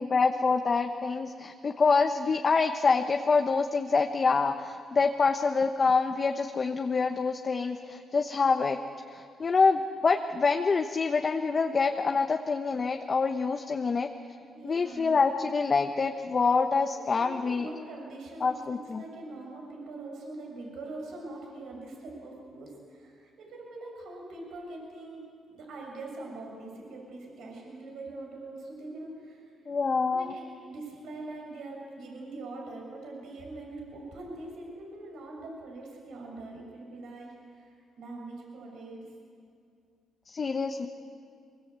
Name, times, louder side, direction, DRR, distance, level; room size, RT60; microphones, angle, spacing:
voice 1, 0.0-8.8 9.1-14.1 14.6-17.7 18.4-19.0 29.7-30.3 40.3-40.9, left 4 dB, 40° left, 4 dB, 1.2 m, -26 dB
voice 2, 14.5-15.2 16.9-29.5 30.1-39.1, right 2 dB, 75° right, 0 dB, 6.5 m, -43 dB
23.5 x 23.5 x 8.3 m, 2.3 s
cardioid pair, 90°, 0 cm